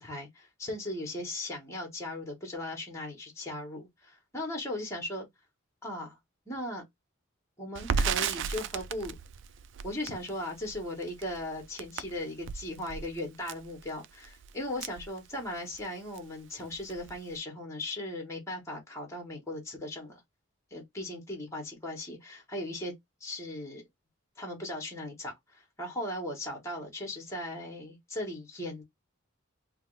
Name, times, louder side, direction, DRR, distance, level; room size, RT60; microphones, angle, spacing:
voice 1, 0.0-5.3 5.8-6.2 6.5-6.8 7.6-9.1 9.8-20.2 20.7-22.9 23.2-23.8 24.4-28.8, left 1 dB, 15° left, 1.2 m, -38 dB
Crackle, 7.8-15.8 16.2-16.3 16.6-17.3, right 6 dB, 60° right, 0.3 m, -35 dB
3.2 x 2.3 x 3.1 m
head